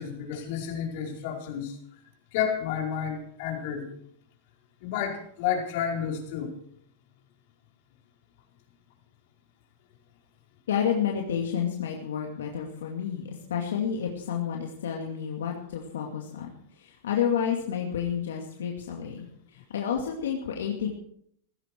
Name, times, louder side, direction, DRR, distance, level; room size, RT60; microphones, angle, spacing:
voice 1, 0.0-1.8 2.3-3.9 4.8-6.5, left 8 dB, 60° left, 1 dB, 4.8 m, -31 dB
voice 2, 10.7-16.5 16.8-20.9, left 8 dB, 85° left, 1 dB, 2.4 m, -30 dB
17.0 x 15.0 x 4.6 m, 0.66 s
hypercardioid pair, 120°, 0 cm